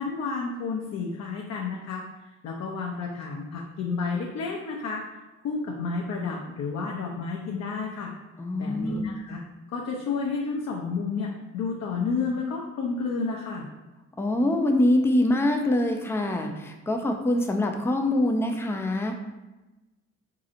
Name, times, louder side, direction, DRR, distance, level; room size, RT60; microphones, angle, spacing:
voice 1, 0.0-2.0 2.4-5.0 5.4-8.1 8.6-9.4 9.7-13.7, left 4 dB, 60° left, -2 dB, 0.5 m, -31 dB
voice 2, 8.4-9.2 14.2-19.1, left 1 dB, 10° left, 3 dB, 0.3 m, -24 dB
4.0 x 2.8 x 2.5 m, 1.1 s
cardioid pair, 90°, 30 cm